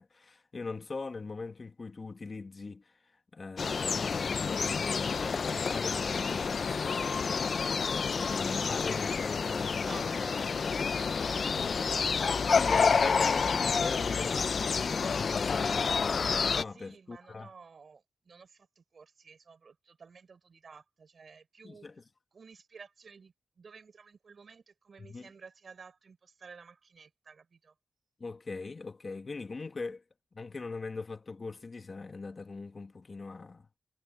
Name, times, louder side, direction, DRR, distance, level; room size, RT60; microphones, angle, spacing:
voice 1, 0.0-3.0 3.3-6.9 7.8-9.9 11.6-17.5 21.6-22.0 25.0-25.3 28.2-30.0 30.3-33.7, left 3 dB, 35° left, 1.6 m, -41 dB
sound 1, 3.6-16.6, left 5 dB, 50° left, 0.4 m, -29 dB
voice 2, 9.8-11.1 16.7-21.9 22.3-27.7, right 5 dB, 50° right, 4.3 m, -53 dB
wide cardioid pair, 140°, 0 cm